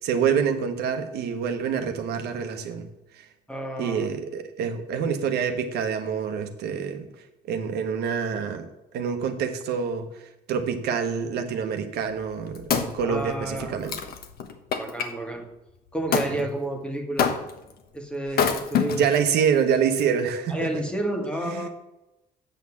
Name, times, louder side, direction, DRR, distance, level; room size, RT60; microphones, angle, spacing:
voice 1, 0.0-2.9 3.1-3.3 3.8-7.1 7.5-8.7 8.9-10.1 10.5-14.0 16.4-16.5 18.9-20.8 21.4-21.7, right 7 dB, 75° right, 6 dB, 1.2 m, -26 dB
voice 2, 3.5-4.1 13.0-13.8 14.8-15.5 15.9-17.4 17.9-19.1 20.5-21.7, right 1 dB, 5° left, 4 dB, 1.6 m, -30 dB
Wood, 12.1-15.1 16.1-16.3 17.2-17.7 18.3-19.3 19.9-20.0, left 7 dB, 65° left, 1.2 m, -27 dB
8.2 x 6.3 x 7.2 m, 0.95 s
cardioid pair, 110°, 17 cm